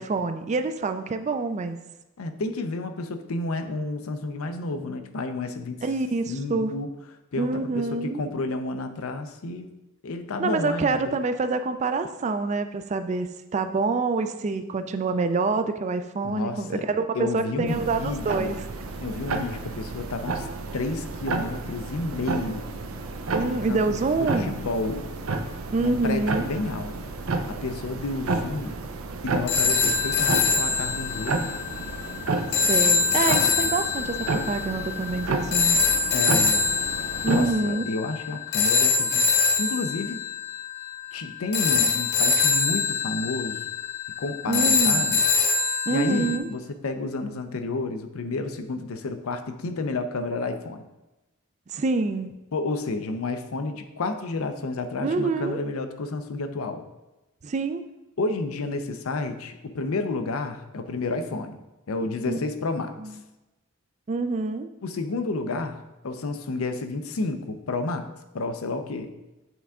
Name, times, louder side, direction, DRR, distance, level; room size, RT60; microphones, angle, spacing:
voice 1, 0.0-1.8 5.8-6.7 7.4-8.2 10.4-18.7 23.3-24.6 25.7-26.5 32.7-35.8 37.2-37.8 44.5-45.1 45.9-46.5 51.7-52.4 55.0-55.6 57.4-57.8 62.3-62.4 63.0-63.1 64.1-64.7, right 3 dB, 35° right, 9 dB, 0.3 m, -26 dB
voice 2, 2.2-5.8 6.3-6.9 7.3-9.7 10.0-11.2 16.2-16.9 17.1-18.5 19.0-20.5 20.7-22.7 23.4-25.1 25.8-27.0 27.5-28.8 29.2-31.5 36.1-36.7 37.3-40.2 41.1-43.7 44.2-45.2 45.7-50.9 52.5-56.8 58.2-61.6 61.9-63.2 64.8-68.1 68.3-69.1, left 3 dB, 90° left, 8 dB, 0.6 m, -31 dB
sound 1, 17.7-37.5, right 3 dB, 80° right, 0.6 m, -31 dB
sound 2, 29.5-46.4, left 4 dB, 50° left, 0.7 m, -24 dB
8.0 x 3.5 x 3.6 m, 1.0 s
head